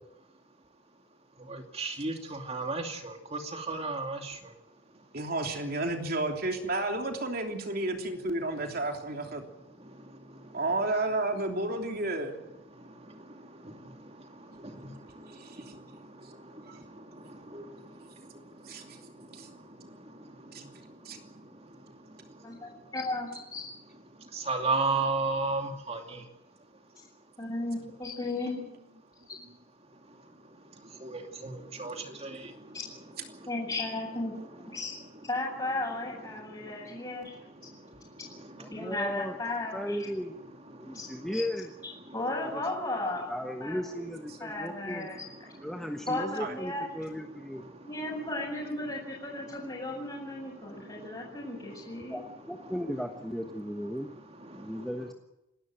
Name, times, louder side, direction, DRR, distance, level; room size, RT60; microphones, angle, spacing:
voice 1, 1.5-4.3 14.8-14.9 17.5-17.7 24.3-26.2 31.0-32.5 54.5-54.6, right 3 dB, 30° right, 4 dB, 2.7 m, -32 dB
voice 2, 5.1-9.4 10.5-12.4 15.3-15.6 16.7-16.8 18.6-19.0 19.3-19.5 20.5-20.7 21.0-21.2 46.4-46.5, right 2 dB, 50° right, 3 dB, 3.2 m, -32 dB
voice 3, 22.4-23.7 27.4-28.6 33.5-34.3 34.7-34.9 35.3-37.7 38.7-40.1 40.9-41.1 41.3-41.4 42.1-43.3 43.6-43.8 44.4-45.2 46.1-46.8 47.8-52.2, left 2 dB, 25° left, -7 dB, 6.7 m, -35 dB
voice 4, 38.6-39.4 39.7-40.3 40.8-41.7 42.5-42.6 43.3-45.1 45.6-47.6 52.1-54.1 54.5-55.1, equal, ahead, 3 dB, 1.2 m, -36 dB
28.5 x 12.5 x 9.2 m, 0.91 s
head